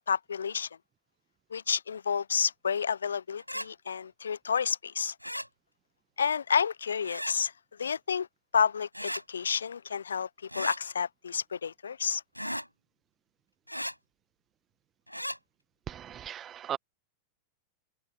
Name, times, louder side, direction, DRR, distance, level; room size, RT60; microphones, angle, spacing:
voice 1, 0.1-0.7 1.5-5.1 6.2-7.5 7.8-8.3 8.5-12.2, left 7 dB, 70° left, 0.6 m, -30 dB
sound 1, 3.4-3.7 5.2-5.5 7.0-7.4 8.9-9.2 10.5-10.8 12.3-12.7 13.7-13.9 15.1-15.4, equal, 90° left, 5.2 m, -35 dB
voice 2, 15.9-16.8, right 10 dB, 25° right, 1.3 m, -37 dB
figure-of-eight pair, 90°, 0 cm